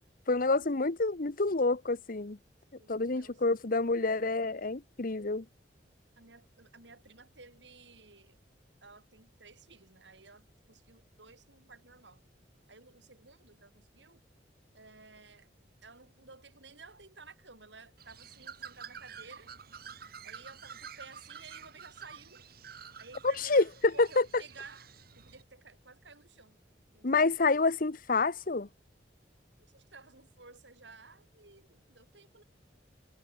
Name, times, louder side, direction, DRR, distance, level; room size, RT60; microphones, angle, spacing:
voice 1, 0.3-2.4 2.9-5.5 23.2-23.6 24.0-24.2 27.0-28.7, left 3 dB, 50° left, 1.0 m, -28 dB
voice 2, 2.8-3.4 6.2-8.4 8.8-12.2 12.7-14.2 14.7-15.5 15.8-19.5 20.2-22.5 23.0-26.6 26.9-27.6 29.6-32.4, right 4 dB, 75° right, 7.3 m, -54 dB
Bird, 18.0-25.4, right 7 dB, 55° right, 2.9 m, -49 dB
head